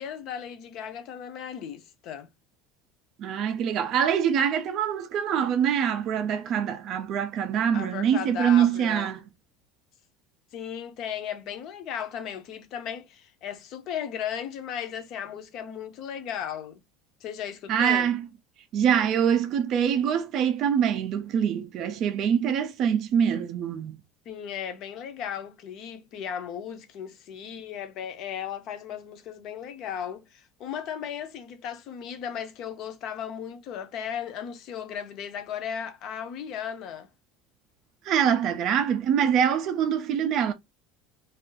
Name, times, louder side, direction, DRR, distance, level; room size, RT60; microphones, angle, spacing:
voice 1, 0.0-2.3 7.7-9.1 10.5-16.8 17.2-18.1 24.3-37.1, left 8 dB, 40° left, 0.6 m, -36 dB
voice 2, 3.2-9.2 17.7-18.3 18.7-24.0 38.0-40.5, right 8 dB, 35° right, 0.4 m, -24 dB
2.4 x 2.4 x 3.8 m
cardioid pair, 180°, 0 cm